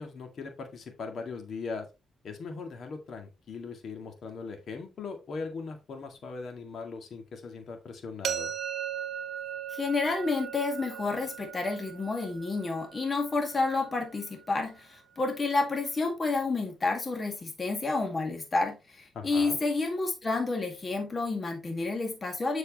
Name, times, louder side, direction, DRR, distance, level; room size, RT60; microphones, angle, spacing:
voice 1, 0.0-1.9 2.2-8.5 19.1-19.6, left 4 dB, 55° left, 4 dB, 2.0 m, -39 dB
sound 1, 8.2-14.1, right 9 dB, 60° right, 1.2 m, -38 dB
voice 2, 9.7-22.6, left 3 dB, 30° left, 3 dB, 1.9 m, -30 dB
7.5 x 6.3 x 3.0 m, 0.26 s
cardioid pair, 95°, 0 cm